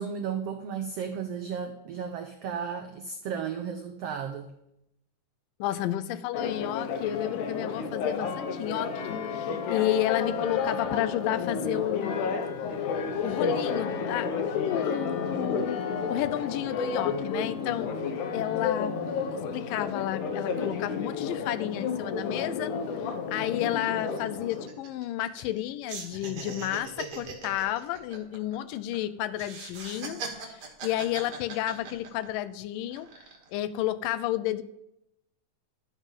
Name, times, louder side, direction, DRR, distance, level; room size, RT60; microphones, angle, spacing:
voice 1, 0.0-4.5, right 7 dB, 90° right, 6 dB, 1.3 m, -34 dB
voice 2, 5.6-12.3 13.2-17.9 18.3-19.0 19.3-22.7 23.0-33.1 33.5-34.6, left 13 dB, 90° left, 13 dB, 2.3 m, -31 dB
Church bell, 6.3-24.7, left 5 dB, 70° left, 2.6 m, -31 dB
sound 1, 23.1-23.2 23.5-23.6 24.0-25.6 25.9-29.0 29.3-32.5 32.9-33.5, right 5 dB, 55° right, 2.7 m, -40 dB
12.5 x 7.3 x 5.4 m, 0.82 s
omnidirectional pair, 3.8 m